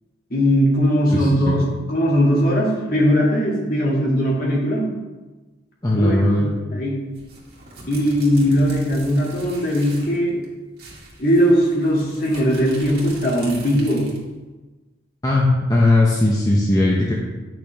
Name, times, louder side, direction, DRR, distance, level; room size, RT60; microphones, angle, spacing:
voice 1, 0.3-4.9 6.0-7.0 7.9-10.4 11.2-14.1, equal, 50° left, -4 dB, 2.3 m, -19 dB
voice 2, 1.1-1.6 5.8-6.5 15.2-17.1, left 2 dB, 20° left, -4 dB, 0.8 m, -18 dB
sound 1, 7.1-10.2 10.4-10.5 10.8-14.3, right 2 dB, 50° right, 2.2 m, -40 dB
10.0 x 6.1 x 3.5 m, 1.2 s
head